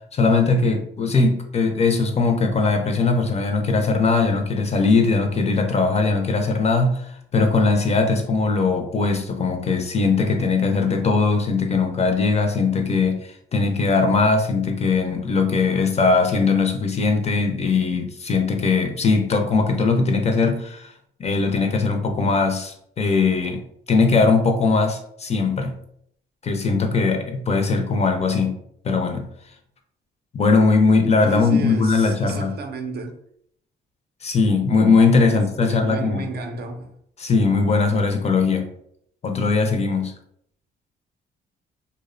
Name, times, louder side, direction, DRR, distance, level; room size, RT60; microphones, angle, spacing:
voice 1, 0.1-20.9 21.2-23.6 23.9-25.7 26.4-28.6 28.8-29.2 30.3-32.5 34.2-36.3 37.2-38.7 39.2-40.1, left 4 dB, 35° left, 0.4 m, -20 dB
voice 2, 31.3-33.2 35.3-36.9, right 3 dB, 55° right, 0.4 m, -32 dB
2.6 x 2.0 x 2.5 m
cardioid pair, 90°, 20 cm